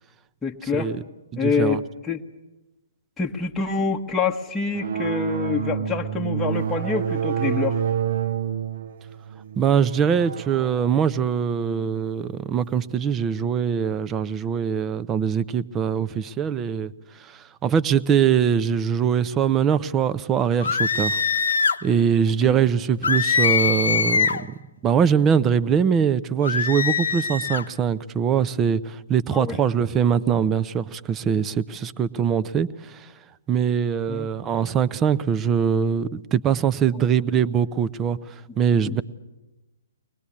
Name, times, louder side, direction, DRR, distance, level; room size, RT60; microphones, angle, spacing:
voice 1, 0.4-0.9 1.4-2.2 3.2-7.8 22.4-22.5 29.3-29.6 34.1-34.3 36.9-37.0 38.9-39.0, left 5 dB, 10° left, -1 dB, 1.2 m, -26 dB
voice 2, 1.3-1.8 9.6-16.9 17.2-21.2 21.8-24.5 24.8-33.1 33.5-38.2 38.6-39.0, right 7 dB, 20° right, 14 dB, 0.8 m, -22 dB
sound 1, 4.7-12.9, right 8 dB, 55° right, 1.0 m, -29 dB
sound 2, 20.6-21.8 23.0-24.5 26.4-27.6, left 5 dB, 70° left, 0.9 m, -22 dB
23.5 x 20.0 x 8.6 m, 1.0 s
figure-of-eight pair, 125°, 0 cm